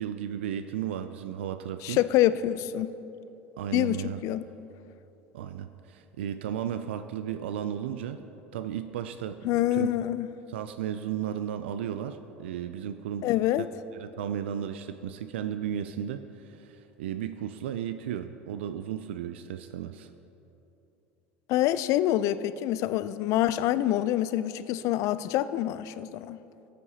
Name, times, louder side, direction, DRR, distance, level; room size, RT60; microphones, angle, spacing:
voice 1, 0.0-2.0 3.6-4.2 5.3-8.2 8.5-9.9 10.5-13.3 13.9-16.2 16.5-20.1, right 9 dB, 80° right, 10 dB, 0.3 m, -34 dB
voice 2, 1.8-2.9 3.7-4.4 9.4-10.3 13.2-13.7 21.5-26.4, left 13 dB, 55° left, 15 dB, 0.3 m, -26 dB
13.5 x 8.3 x 2.8 m, 2.9 s
hypercardioid pair, 80°, 6 cm